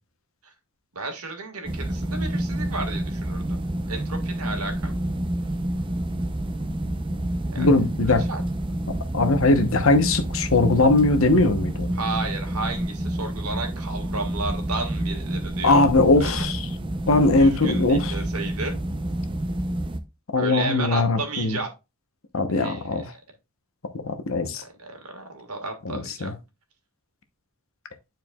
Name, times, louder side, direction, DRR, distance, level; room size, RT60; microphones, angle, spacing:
voice 1, 1.0-3.6 3.9-4.9 7.5-7.7 8.0-8.4 11.9-15.9 16.2-16.5 17.4-18.8 20.3-21.7 22.5-23.1 24.6-26.3, right 3 dB, 85° right, 1.9 m, -33 dB
sound 1, 1.6-20.0, right 1 dB, 25° right, 0.6 m, -28 dB
voice 2, 7.6-8.2 9.1-11.9 15.6-16.6 17.1-18.1 20.3-21.6 22.3-23.1 24.0-24.6 25.8-26.3, left 2 dB, 65° left, 1.0 m, -20 dB
11.0 x 4.6 x 2.3 m
head